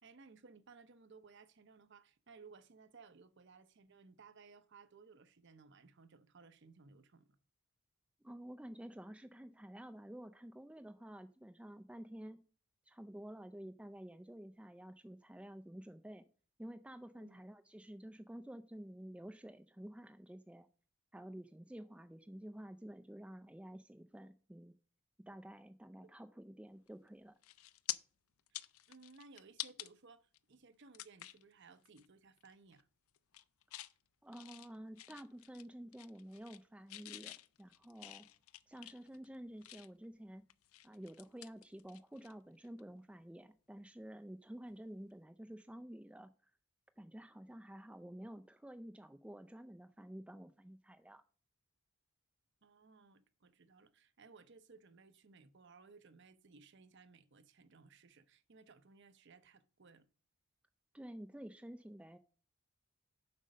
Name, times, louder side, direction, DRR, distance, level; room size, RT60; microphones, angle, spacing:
voice 1, 0.0-7.4 17.2-17.4 28.5-32.9 52.6-60.1, right 4 dB, 50° right, 0.7 m, -60 dB
voice 2, 8.2-12.4 12.9-16.2 16.6-20.7 21.1-24.7 25.3-27.3 34.2-38.3 38.7-40.4 40.8-46.5 47.0-51.2 60.9-62.2, right 1 dB, 5° right, 0.3 m, -51 dB
sound 1, 26.9-27.1 27.4-28.0 28.4-29.9 30.3-30.4 30.9-31.4 31.9-32.1 32.4-32.8 33.2-33.9 34.3-35.7 35.9-36.6 36.9-40.1 40.5-42.3 42.6-42.8 44.7-44.8, left 15 dB, 75° left, 0.5 m, -48 dB
7.6 x 5.1 x 5.2 m
head